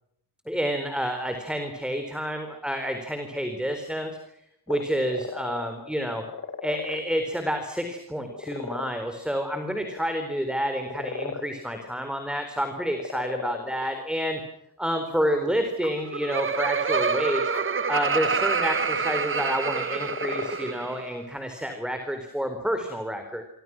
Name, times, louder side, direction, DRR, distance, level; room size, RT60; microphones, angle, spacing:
voice 1, 0.5-4.1 4.7-6.2 6.6-14.4 14.8-17.5 17.9-23.4, equal, ahead, 6 dB, 4.1 m, -29 dB
sound 1, 4.7-7.3 7.8-8.9 9.3-10.0 10.7-11.9 12.7-13.9 15.1-15.2 15.8-16.5 16.9-17.0 17.5-17.6 19.8-20.8, left 6 dB, 45° left, 2.5 m, -37 dB
Laughter, 15.8-21.1, right 5 dB, 35° right, 1.7 m, -27 dB
30.0 x 25.5 x 6.2 m, 0.77 s
wide cardioid pair, 155°, 36 cm